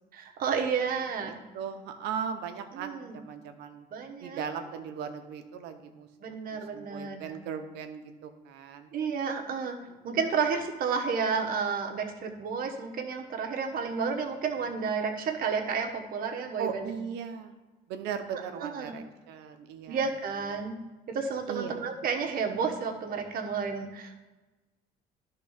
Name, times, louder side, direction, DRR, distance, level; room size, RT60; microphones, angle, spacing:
voice 1, 0.1-1.4 2.7-3.2 3.9-4.4 6.2-7.3 8.9-9.8 10.0-16.9 18.5-18.9 19.9-20.8 21.1-24.2, right 5 dB, 60° right, 4 dB, 1.2 m, -31 dB
voice 2, 1.3-3.9 4.2-6.1 6.5-8.9 9.9-10.2 16.6-17.5 17.9-20.0 21.5-21.8, right 7 dB, 90° right, 7 dB, 0.8 m, -38 dB
11.0 x 3.8 x 5.6 m, 1.2 s
cardioid pair, 110°, 17 cm